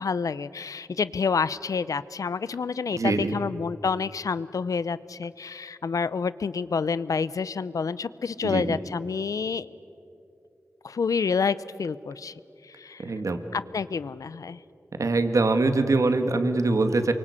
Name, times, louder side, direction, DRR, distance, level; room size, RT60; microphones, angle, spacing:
voice 1, 0.0-9.7 10.8-12.3 12.7-13.0 13.5-14.6, left 5 dB, 85° left, 17 dB, 0.7 m, -28 dB
voice 2, 2.9-3.3 8.4-8.8 13.0-13.4 15.0-17.1, right 3 dB, 70° right, 8 dB, 1.9 m, -23 dB
28.5 x 24.5 x 8.4 m, 2.6 s
wide cardioid pair, 70°, 6 cm